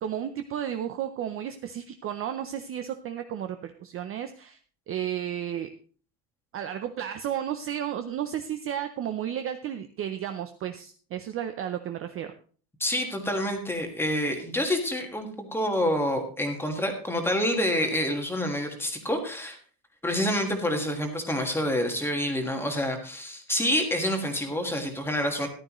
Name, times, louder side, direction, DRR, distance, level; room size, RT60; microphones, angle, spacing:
voice 1, 0.0-4.6 4.9-5.7 6.5-12.3, right 10 dB, 30° right, 8 dB, 0.5 m, -33 dB
voice 2, 12.8-19.6 20.0-25.5, left 1 dB, 5° left, 4 dB, 1.5 m, -27 dB
14.0 x 11.5 x 3.0 m, 0.41 s
cardioid pair, 175°, 43 cm